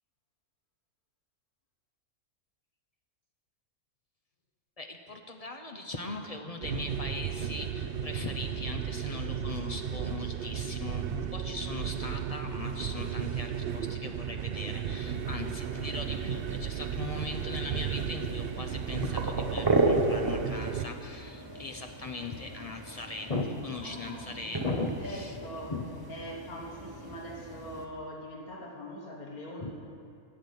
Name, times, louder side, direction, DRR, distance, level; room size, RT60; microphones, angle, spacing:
voice 1, 4.8-25.3 25.7-25.9 29.6-29.7, left 3 dB, 35° left, 4 dB, 0.6 m, -39 dB
sound 1, 6.6-20.9, right 8 dB, 80° right, 0.5 m, -34 dB
sound 2, 15.0-27.8, right 2 dB, 20° right, 0.8 m, -35 dB
voice 2, 23.8-24.5 25.0-25.7 26.1-29.7, equal, 80° left, 0 dB, 1.9 m, -42 dB
11.0 x 7.9 x 8.4 m, 2.4 s
omnidirectional pair, 1.6 m